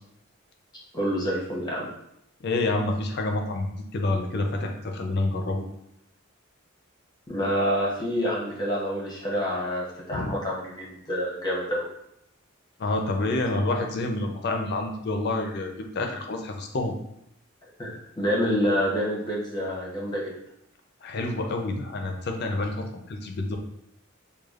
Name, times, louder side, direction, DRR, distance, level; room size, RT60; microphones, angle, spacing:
voice 1, 0.9-1.9 7.3-11.9 17.8-20.3, equal, 20° left, -5 dB, 0.8 m, -27 dB
voice 2, 2.4-5.6 10.1-10.3 12.8-16.9 21.0-23.6, left 2 dB, 50° left, 4 dB, 0.5 m, -28 dB
4.9 x 2.3 x 2.4 m, 0.80 s
head